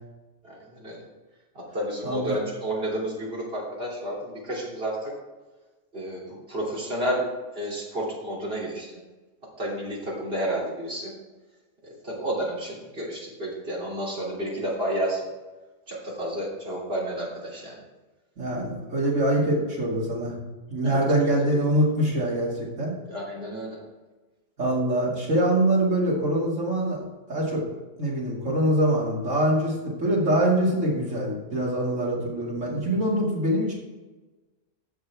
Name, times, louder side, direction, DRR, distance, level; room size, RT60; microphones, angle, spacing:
voice 1, 0.4-1.0 1.5-5.1 5.9-7.2 7.5-8.9 9.6-11.1 11.8-15.2 15.9-17.8 20.8-21.0 21.3-21.5 23.1-23.8, right 1 dB, 50° right, -5 dB, 3.3 m, -31 dB
voice 2, 2.0-2.4 18.4-20.3 20.7-22.9 24.6-27.0 27.3-27.6 28.0-33.7, right 1 dB, 75° right, -4 dB, 2.7 m, -24 dB
12.5 x 7.7 x 3.5 m, 1.2 s
omnidirectional pair, 1.3 m